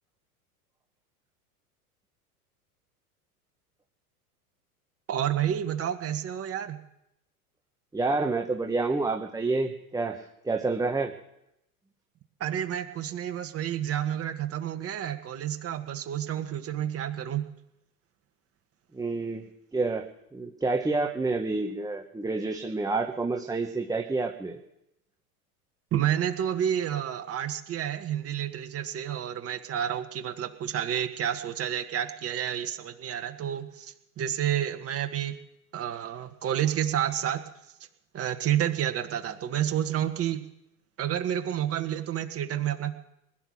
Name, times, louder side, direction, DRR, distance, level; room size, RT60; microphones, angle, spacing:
voice 1, 5.1-6.8 12.4-17.5 25.9-35.4 35.7-37.4 38.1-40.4 41.0-42.9, right 10 dB, 30° right, 6 dB, 1.7 m, -30 dB
voice 2, 7.9-11.1 18.9-19.4 19.7-24.6, right 3 dB, 10° right, 4 dB, 1.3 m, -29 dB
20.5 x 10.5 x 6.4 m, 0.83 s
hypercardioid pair, 90°, 45 cm